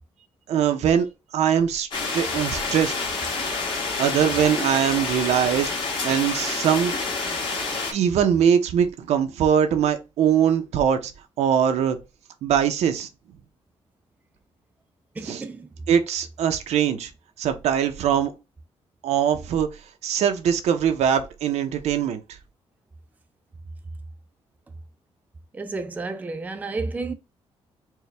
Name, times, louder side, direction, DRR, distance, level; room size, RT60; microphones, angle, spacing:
voice 1, 0.5-1.1 1.3-2.9 4.0-6.9 7.3-7.4 7.9-11.1 11.4-12.0 12.4-13.1 15.2-15.4 15.9-17.1 17.4-18.3 19.0-19.7 20.0-22.2, right 8 dB, 85° right, 0.7 m, -22 dB
sound 1, 1.9-7.9, left 3 dB, 45° left, 1.6 m, -28 dB
voice 2, 15.2-15.7 25.5-27.1, right 3 dB, 15° right, 0.4 m, -31 dB
4.5 x 2.2 x 3.3 m
cardioid pair, 150°, 11 cm